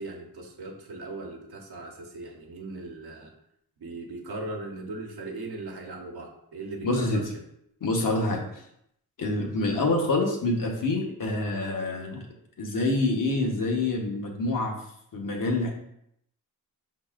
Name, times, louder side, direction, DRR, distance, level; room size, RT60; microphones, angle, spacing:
voice 1, 0.0-3.3 3.8-7.4, right 2 dB, 75° right, 1 dB, 1.0 m, -39 dB
voice 2, 6.8-7.2 7.8-8.6 9.2-12.3 12.6-14.7 15.1-15.7, left 2 dB, 55° left, 1 dB, 1.0 m, -26 dB
5.4 x 3.9 x 2.4 m, 0.74 s
wide cardioid pair, 105°, 39 cm